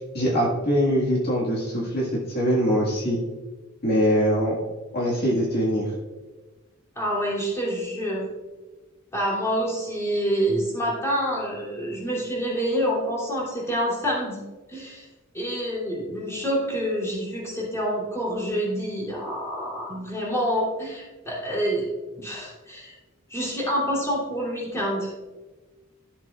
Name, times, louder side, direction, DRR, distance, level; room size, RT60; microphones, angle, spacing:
voice 1, 0.0-3.2 3.8-4.5 4.9-5.9, equal, 50° left, -4 dB, 1.8 m, -23 dB
voice 2, 6.9-8.3 9.1-14.4 14.7-15.0 15.3-21.9 22.2-22.9 23.3-25.1, equal, 15° left, -6 dB, 3.0 m, -27 dB
13.5 x 7.5 x 2.4 m, 1.2 s
head